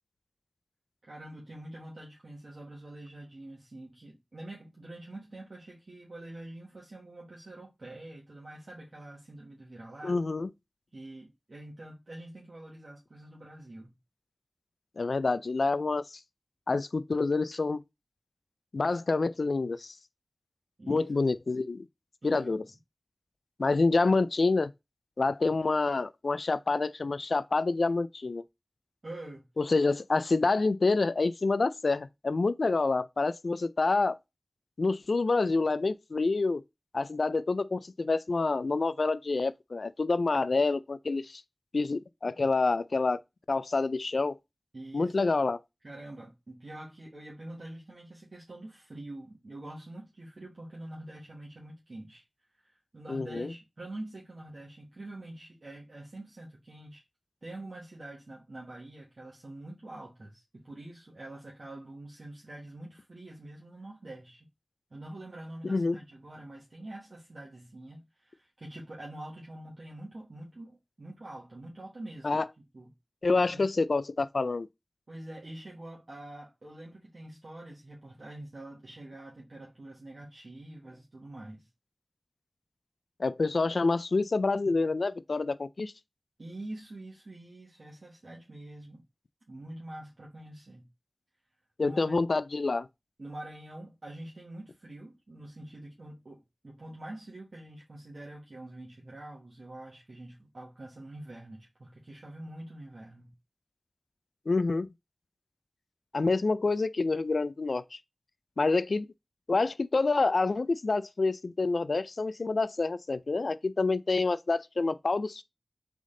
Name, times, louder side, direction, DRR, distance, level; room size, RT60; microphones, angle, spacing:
voice 1, 1.0-10.2 10.9-13.9 20.8-21.0 22.2-22.7 29.0-29.4 44.7-45.2 45.8-52.2 52.5-57.0 57.4-64.5 64.9-72.4 72.7-72.9 73.3-73.6 75.1-81.7 86.4-89.0 89.5-90.9 91.8-92.2 93.2-103.3, right 1 dB, 60° right, 1.3 m, -45 dB
voice 2, 10.0-10.5 15.0-16.0 16.7-17.8 18.7-19.9 20.9-21.8 22.2-22.6 23.6-24.7 25.2-28.4 29.6-34.2 34.8-36.6 36.9-41.4 41.7-43.2 43.5-44.4 44.9-45.6 53.1-53.5 65.6-66.0 72.2-72.4 73.2-74.7 83.2-85.9 91.8-92.9 104.5-104.9 106.1-108.0 108.6-109.1 109.5-115.4, left 3 dB, 75° left, 0.3 m, -27 dB
3.7 x 3.5 x 3.7 m
wide cardioid pair, 55°, 0 cm